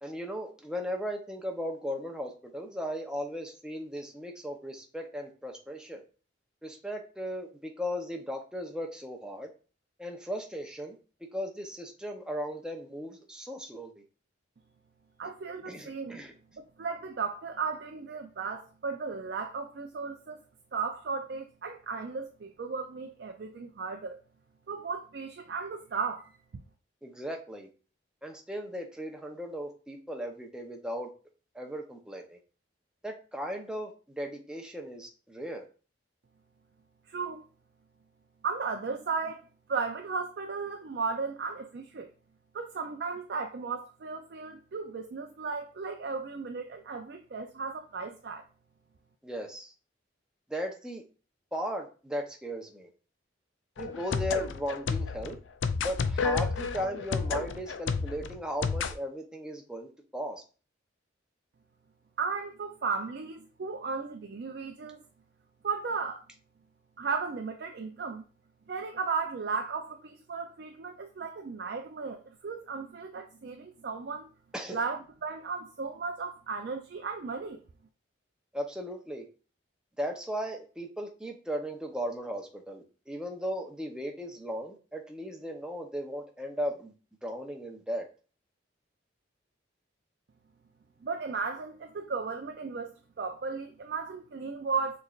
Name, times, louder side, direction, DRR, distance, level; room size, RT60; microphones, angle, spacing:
voice 1, 0.0-6.0 6.6-9.5 10.0-11.0 11.3-13.9 15.7-16.3 27.0-27.7 28.2-31.1 31.5-32.4 33.0-35.6 49.2-49.7 50.5-51.0 51.5-52.9 53.8-55.4 55.8-60.4 74.5-74.8 78.5-79.2 80.0-86.9 87.2-88.0, equal, 5° right, 0.7 m, -37 dB
voice 2, 15.2-16.2 16.8-20.4 20.7-24.2 24.7-26.3 37.1-37.4 38.4-42.1 42.5-48.4 62.2-65.0 65.6-66.2 67.0-68.3 68.7-74.3 74.7-77.6 91.0-95.0, right 5 dB, 60° right, 0.4 m, -35 dB
sound 1, 53.8-59.0, left 5 dB, 75° left, 0.4 m, -31 dB
6.3 x 3.2 x 2.4 m
head